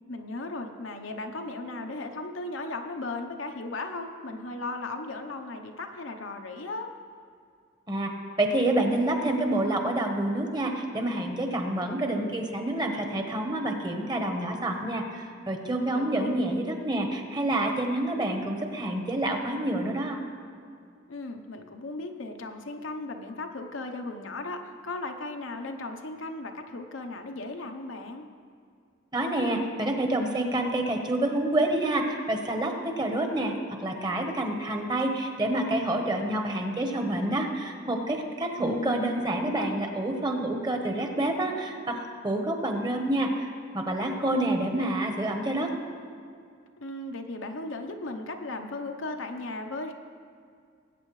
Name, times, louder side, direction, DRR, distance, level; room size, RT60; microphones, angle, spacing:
voice 1, 0.1-6.9 15.9-16.3 21.1-28.2 38.6-39.8 46.8-49.9, left 2 dB, 85° left, 5 dB, 0.9 m, -36 dB
voice 2, 8.4-20.2 29.1-33.5 33.8-45.7, right 1 dB, 20° right, 3 dB, 1.1 m, -28 dB
20.0 x 8.6 x 3.2 m, 2.2 s
head